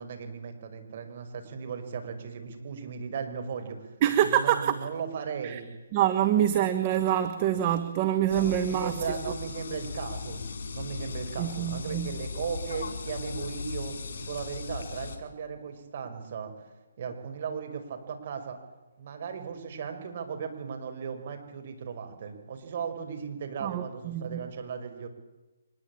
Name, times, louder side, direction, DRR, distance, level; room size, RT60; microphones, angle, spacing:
voice 1, 0.0-3.9 4.2-5.7 8.4-10.4 10.7-16.5 17.0-18.6 19.0-25.1, right 6 dB, 45° right, 6 dB, 5.6 m, -37 dB
voice 2, 4.0-4.8 5.4-5.6 5.9-9.2 11.4-12.1 23.6-24.4, right 11 dB, 30° right, 8 dB, 1.4 m, -26 dB
sound 1, 8.3-15.2, left 5 dB, 55° left, 4.8 m, -37 dB
24.5 x 21.0 x 8.7 m, 1.1 s
figure-of-eight pair, 145°, 0 cm